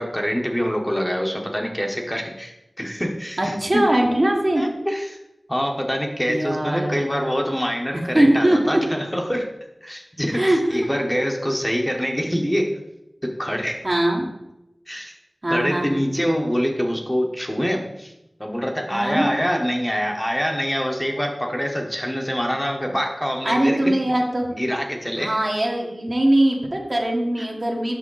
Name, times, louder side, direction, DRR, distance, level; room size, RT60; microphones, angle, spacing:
voice 1, 0.0-3.9 4.5-5.2 5.5-9.5 9.8-12.8 13.2-13.8 14.9-15.2 15.5-18.1 18.4-23.9 24.5-25.3, equal, 10° left, 1 dB, 0.8 m, -25 dB
voice 2, 3.4-4.6 6.3-7.2 8.1-8.6 10.3-10.6 13.8-14.3 15.4-15.9 18.9-19.3 23.4-24.5 25.2-28.0, right 1 dB, 45° right, 0 dB, 1.2 m, -21 dB
6.0 x 5.7 x 3.8 m, 0.90 s
wide cardioid pair, 60°, 0 cm